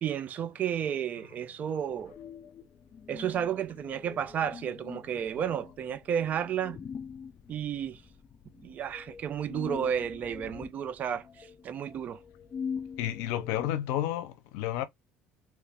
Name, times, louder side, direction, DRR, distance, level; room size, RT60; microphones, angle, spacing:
voice 1, 0.0-2.1 3.1-6.8 7.5-8.0 8.6-12.2, right 8 dB, 40° right, 0.4 m, -32 dB
sound 1, 1.9-13.7, left 6 dB, 30° left, 0.4 m, -44 dB
voice 2, 13.0-14.8, left 12 dB, 85° left, 0.6 m, -31 dB
3.0 x 2.4 x 3.4 m
cardioid pair, 130°, 4 cm